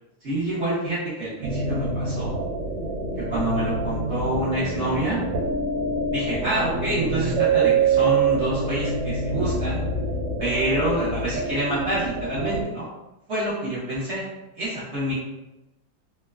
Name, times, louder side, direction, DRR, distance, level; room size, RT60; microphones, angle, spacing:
voice 1, 0.2-2.3 3.3-5.2 6.1-9.8 10.4-12.9 13.3-14.2 14.6-15.1, right 1 dB, 60° right, -10 dB, 0.7 m, -27 dB
sound 1, 1.4-12.6, right 4 dB, 85° right, 1.3 m, -25 dB
2.9 x 2.1 x 2.3 m, 1.0 s
omnidirectional pair, 2.0 m